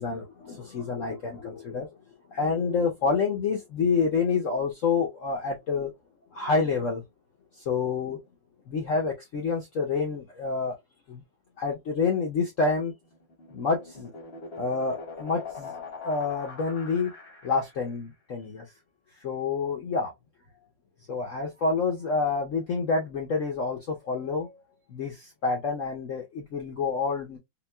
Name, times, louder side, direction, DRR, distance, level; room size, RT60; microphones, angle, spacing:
voice 1, 0.0-1.9 2.3-5.9 6.3-7.0 7.7-8.2 8.7-10.7 11.1-11.2 11.6-12.9 13.5-14.1 14.6-15.7 16.0-17.1 17.4-18.7 19.2-20.1 21.1-24.6 24.9-27.4, left 4 dB, 80° left, 0.7 m, -28 dB
sound 1, 13.1-17.9, left 4 dB, 40° left, 1.0 m, -42 dB
5.6 x 2.2 x 2.2 m
omnidirectional pair, 2.3 m